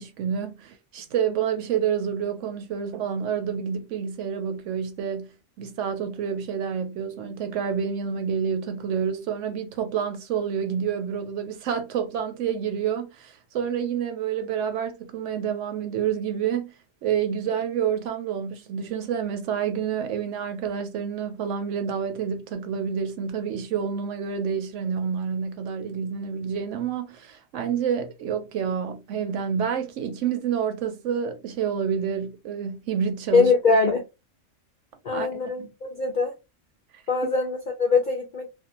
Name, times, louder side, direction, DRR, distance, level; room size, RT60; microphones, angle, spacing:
voice 1, 0.0-16.7 17.0-33.5 35.1-35.7, right 7 dB, 70° right, 0.9 m, -28 dB
voice 2, 33.3-34.0 35.0-36.3 37.1-38.5, left 4 dB, 60° left, 0.5 m, -22 dB
2.5 x 2.2 x 2.7 m
omnidirectional pair, 1.4 m